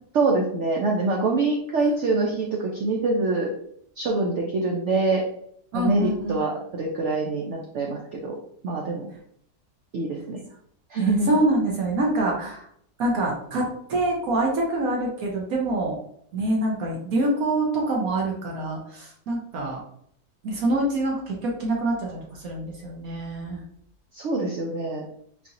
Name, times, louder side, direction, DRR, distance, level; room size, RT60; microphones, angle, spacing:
voice 1, 0.1-3.5 4.0-5.2 5.7-8.3 8.6-9.1 9.9-10.4 10.9-11.3 24.1-25.0, right 3 dB, 85° right, 0 dB, 0.6 m, -25 dB
voice 2, 5.7-6.4 11.0-12.7 13.0-16.0 16.3-19.8 20.4-23.6, right 2 dB, 65° right, -2 dB, 1.1 m, -25 dB
3.9 x 2.8 x 2.5 m, 0.68 s
omnidirectional pair, 1.8 m